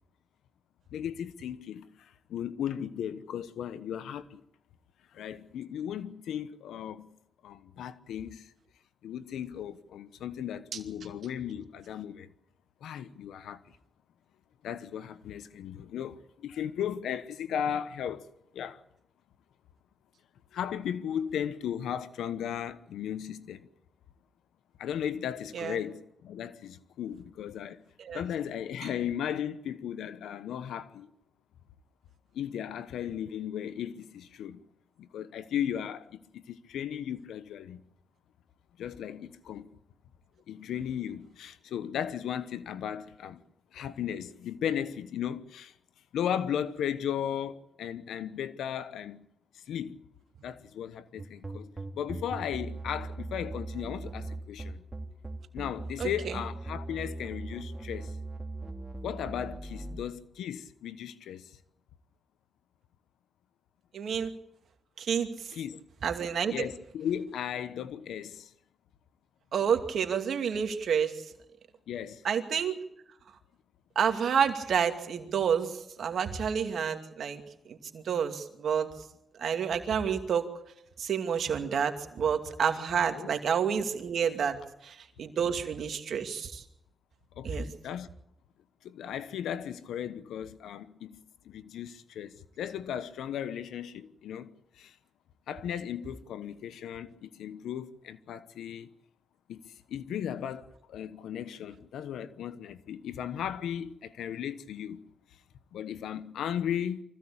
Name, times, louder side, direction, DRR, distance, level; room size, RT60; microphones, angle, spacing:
voice 1, 0.9-4.4 5.1-7.1 7.4-8.5 9.0-12.3 12.8-13.8 14.6-18.3 18.5-18.8 20.5-23.7 24.8-27.8 28.1-31.1 32.3-34.6 35.0-37.8 38.8-39.7 40.5-43.4 43.7-45.7 46.1-49.2 49.5-50.0 50.4-54.8 55.5-58.1 59.0-61.5 65.5-65.8 66.5-68.5 71.9-72.2 83.1-83.3 87.4-88.1 88.8-94.9 95.5-98.9 99.5-105.1 105.7-107.0, left 9 dB, 90° left, 1.1 m, -36 dB
sound 1, 51.2-60.0, right 2 dB, 25° right, 3.1 m, -39 dB
voice 2, 56.0-56.3 63.9-64.3 65.0-65.5 66.0-66.5 69.5-71.1 72.2-72.7 74.0-77.4 77.7-78.9 79.4-80.4 81.0-84.6 84.8-86.6 87.4-87.7, right 7 dB, 75° right, 2.5 m, -29 dB
24.5 x 16.0 x 8.7 m
supercardioid pair, 45°, 0 cm